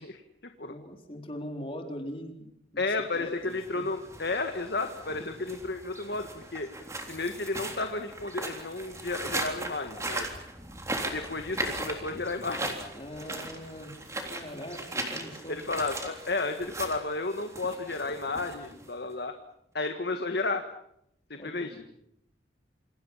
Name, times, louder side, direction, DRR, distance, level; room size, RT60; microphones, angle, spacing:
voice 1, 0.0-0.7 2.8-6.7 7.1-10.2 11.0-12.8 15.5-19.3 19.7-20.7 21.3-21.8, left 3 dB, 55° left, 6 dB, 1.7 m, -32 dB
voice 2, 0.7-2.8 3.2-3.3 3.7-3.8 12.9-13.9 14.3-15.6 21.4-21.8, equal, 30° left, 3 dB, 4.2 m, -41 dB
sound 1, 3.4-19.1, right 2 dB, 15° right, 3.5 m, -38 dB
28.5 x 27.0 x 5.7 m, 0.76 s
head